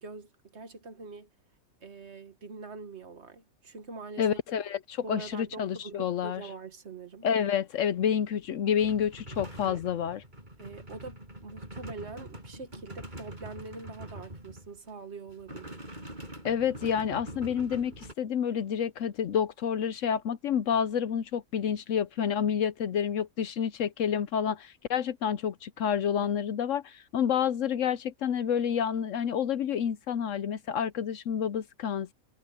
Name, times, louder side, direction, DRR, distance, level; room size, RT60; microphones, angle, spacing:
voice 1, 0.0-1.3 1.8-4.4 5.0-7.3 9.6-9.8 10.6-15.9 26.2-26.3, right 3 dB, 50° right, 1.6 m, -44 dB
voice 2, 4.2-6.4 7.2-10.2 16.4-32.1, left 8 dB, 65° left, 1.0 m, -29 dB
sound 1, 8.8-14.9 15.3-18.1, right 1 dB, 30° right, 6.3 m, -44 dB
omnidirectional pair, 1.5 m